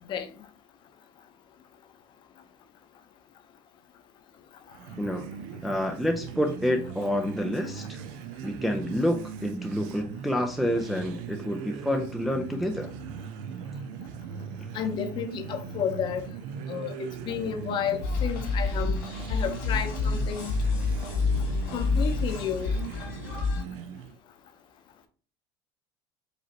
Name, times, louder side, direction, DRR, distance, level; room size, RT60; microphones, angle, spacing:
sound 1, 4.7-24.2, right 7 dB, 75° right, 0.5 m, -39 dB
voice 1, 5.6-8.0 8.4-12.9, equal, ahead, 0.4 m, -28 dB
voice 2, 14.7-16.2 16.7-18.9 19.3-20.5 21.7-22.7, left 8 dB, 45° left, 0.7 m, -31 dB
sound 2, 18.0-23.6, left 4 dB, 85° left, 2.0 m, -28 dB
4.9 x 3.1 x 2.8 m
supercardioid pair, 130°, 11 cm